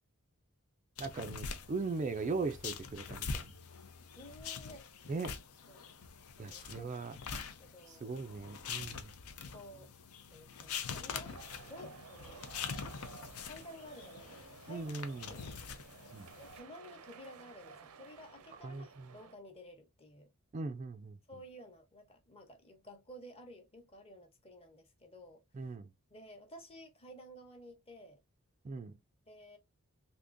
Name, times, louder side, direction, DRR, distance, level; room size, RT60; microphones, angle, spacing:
sound 1, 1.0-16.6, left 6 dB, 75° left, 0.6 m, -45 dB
voice 1, 1.0-3.5 5.1-5.4 6.4-7.2 7.9-9.1 14.7-15.4 16.1-16.3 18.6-19.1 20.5-21.2 25.5-25.9 28.6-29.0, right 4 dB, 35° right, 0.3 m, -39 dB
voice 2, 4.2-4.9 5.7-5.9 6.4-7.1 7.6-8.2 9.5-9.9 10.3-12.5 13.4-14.9 15.3-15.5 16.4-20.3 21.3-25.7 26.1-28.2 29.3-29.6, equal, 25° left, 0.9 m, -53 dB
sound 2, 11.2-19.3, right 5 dB, 80° right, 0.5 m, -55 dB
3.6 x 2.8 x 2.5 m
head